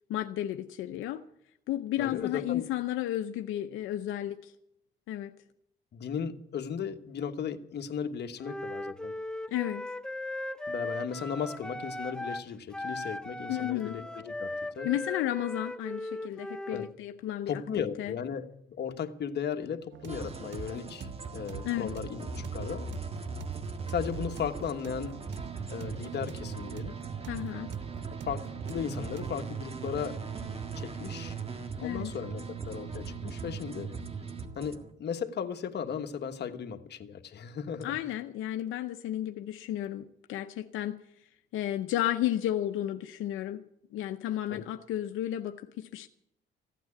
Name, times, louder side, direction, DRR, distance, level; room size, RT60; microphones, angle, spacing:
voice 1, 0.1-1.2 1.7-4.5 5.1-5.3 9.5-9.8 13.5-14.0 14.8-17.6 18.0-18.1 21.6-21.9 27.2-27.7 31.8-32.1 37.8-41.0 41.5-43.6 43.9-46.1, left 13 dB, 85° left, 7 dB, 0.7 m, -33 dB
voice 2, 2.0-2.7 5.9-9.1 10.7-14.9 16.7-16.9 17.5-22.9 23.9-25.2 25.7-27.0 28.2-30.2 30.8-31.4 31.8-33.9 34.5-37.9 44.5-44.6, left 7 dB, 55° left, 7 dB, 1.3 m, -36 dB
Wind instrument woodwind instrument, 8.4-12.5 12.7-16.9, left 1 dB, 5° left, 0.5 m, -38 dB
sound 1, 19.9-29.4, right 9 dB, 70° right, 0.7 m, -45 dB
sound 2, 20.1-34.9, right 5 dB, 30° right, 1.7 m, -39 dB
15.0 x 9.2 x 8.5 m, 0.79 s
cardioid pair, 90°, 20 cm